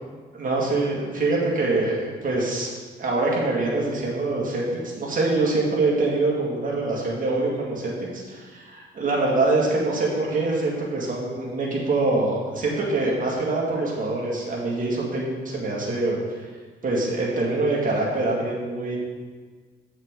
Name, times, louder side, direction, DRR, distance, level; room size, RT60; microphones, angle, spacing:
voice 1, 0.3-2.7 3.0-4.6 5.0-16.2 16.8-19.0, right 2 dB, 45° right, -4 dB, 2.0 m, -24 dB
7.9 x 6.4 x 3.8 m, 1.5 s
cardioid pair, 90°, 20 cm